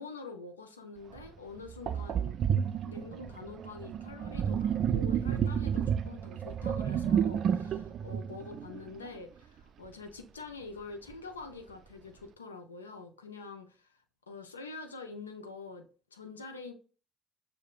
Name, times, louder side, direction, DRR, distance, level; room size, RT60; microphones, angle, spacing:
voice 1, 0.0-2.4 2.9-15.8 16.1-16.7, left 4 dB, 85° left, 0.4 m, -46 dB
Sink (filling or washing), 1.2-1.3 1.9-9.2, right 8 dB, 50° right, 0.3 m, -31 dB
6.3 x 2.1 x 2.3 m
figure-of-eight pair, 50°, 0 cm